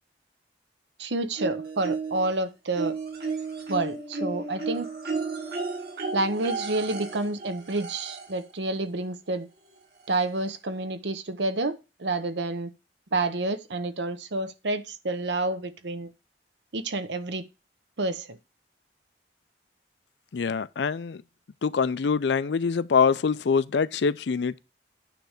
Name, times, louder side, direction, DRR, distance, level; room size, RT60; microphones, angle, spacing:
voice 1, 1.0-2.9 3.7-4.9 6.1-9.5 10.1-12.7 13.1-16.1 16.7-17.4 18.0-18.4, right 2 dB, 75° right, 0.9 m, -29 dB
sound 1, 1.4-2.3 2.8-8.4 9.7-9.8 10.1-10.2, right 4 dB, 55° right, 2.9 m, -33 dB
voice 2, 20.3-21.2 21.6-24.6, left 5 dB, 70° left, 0.4 m, -24 dB
9.2 x 3.4 x 6.5 m
head